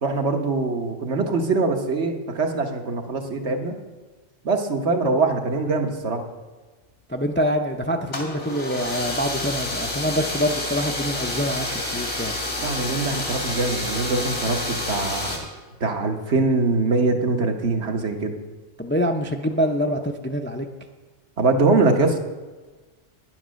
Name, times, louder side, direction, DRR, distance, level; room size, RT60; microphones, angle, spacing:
voice 1, 0.0-3.7 4.4-6.2 12.6-15.4 15.8-18.3 21.4-22.2, right 3 dB, 75° right, 3 dB, 1.5 m, -23 dB
voice 2, 7.1-12.4 18.8-20.7, equal, 15° left, 3 dB, 0.4 m, -25 dB
sound 1, 8.1-15.4, left 2 dB, 85° left, 2.8 m, -29 dB
10.0 x 9.4 x 6.3 m, 1.3 s
omnidirectional pair, 1.2 m